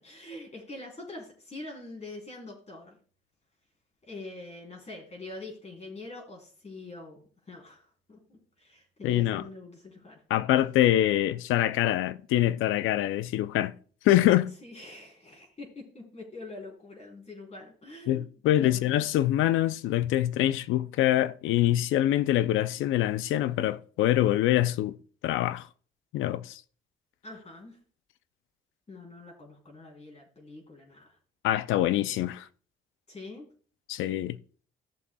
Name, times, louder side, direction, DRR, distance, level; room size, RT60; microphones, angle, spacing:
voice 1, 0.0-3.0 4.0-10.2 14.6-18.3 18.6-19.0 27.2-27.8 28.9-31.2 33.1-33.5, left 2 dB, 35° left, 3.4 m, -44 dB
voice 2, 9.0-9.4 10.3-13.7 14.0-14.5 18.1-25.0 25.2-25.7 26.1-26.6 31.4-32.4 33.9-34.4, left 13 dB, 90° left, 0.5 m, -25 dB
15.0 x 6.9 x 2.3 m
cardioid pair, 90°, 20 cm